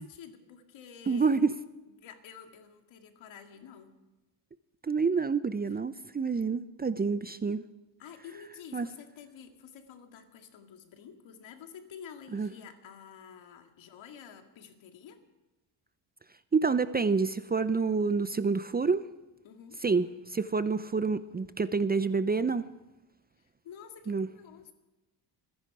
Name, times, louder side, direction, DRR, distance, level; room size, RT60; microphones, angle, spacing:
voice 1, 0.0-1.4 1.9-3.9 5.7-5.8 8.0-15.2 19.4-19.8 23.4-24.7, left 7 dB, 70° left, 5 dB, 2.2 m, -49 dB
voice 2, 1.1-1.5 4.9-7.6 8.7-8.9 12.3-12.5 16.5-19.0 19.8-22.7 24.1-24.3, right 4 dB, 20° right, 14 dB, 0.6 m, -28 dB
24.5 x 10.5 x 4.9 m, 1.1 s
supercardioid pair, 70°, 47 cm